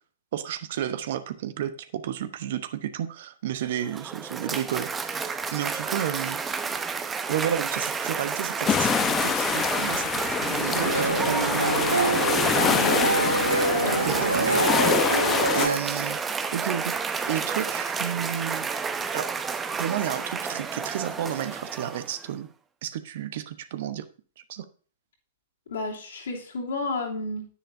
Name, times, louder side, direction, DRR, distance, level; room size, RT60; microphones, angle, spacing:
voice 1, 0.3-6.4 7.3-11.6 14.0-14.6 15.5-16.2 16.5-16.9 17.3-18.7 19.1-19.3 19.8-22.5 22.8-24.0 24.5-24.7, right 10 dB, 55° right, 11 dB, 0.9 m, -32 dB
Cheering / Applause, 3.7-22.3, right 5 dB, 15° right, 0.8 m, -30 dB
sound 1, 8.6-15.7, left 7 dB, 20° left, 0.9 m, -26 dB
sound 2, 10.7-15.8, right 2 dB, 85° right, 0.4 m, -25 dB
voice 2, 12.6-13.2 13.7-15.0 25.7-27.5, left 2 dB, 65° left, -2 dB, 2.9 m, -32 dB
10.0 x 9.9 x 2.7 m, 0.40 s
figure-of-eight pair, 105°, 0 cm